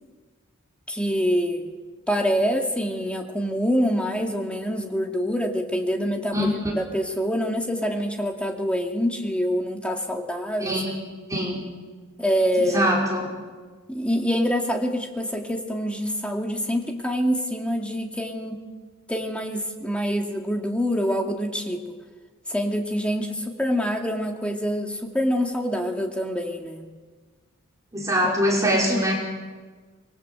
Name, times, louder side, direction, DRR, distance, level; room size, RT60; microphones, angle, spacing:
voice 1, 0.9-1.7 2.1-10.8 12.2-13.0 13.9-18.6 19.1-21.8 22.5-26.9 28.2-28.3 28.7-29.1, equal, 5° left, 2 dB, 2.3 m, -26 dB
voice 2, 10.6-11.0 11.3-11.7 12.7-13.2 27.9-29.1, equal, 15° right, -3 dB, 5.2 m, -23 dB
26.5 x 22.0 x 8.1 m, 1.4 s
head